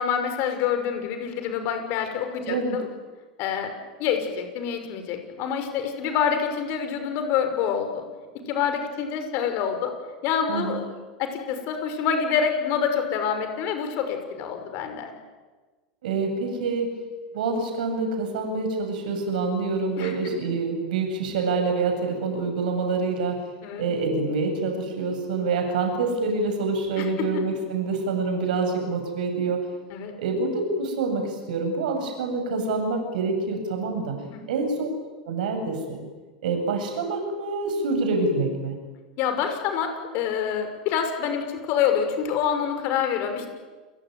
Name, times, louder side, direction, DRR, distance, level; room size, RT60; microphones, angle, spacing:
voice 1, 0.0-2.9 3.4-3.7 4.0-8.0 8.5-9.9 10.2-10.9 11.2-15.1 20.0-20.1 23.6-23.9 27.0-27.1 27.3-27.4 29.9-30.1 34.3-34.4 39.2-43.5, left 7 dB, 55° left, 7 dB, 6.1 m, -26 dB
voice 2, 2.4-2.8 10.5-10.8 16.0-16.9 17.3-23.4 23.8-29.6 30.2-34.2 34.5-36.0 36.4-38.7, right 3 dB, 70° right, 4 dB, 7.8 m, -26 dB
29.5 x 20.5 x 9.6 m, 1.3 s
hypercardioid pair, 90°, 5 cm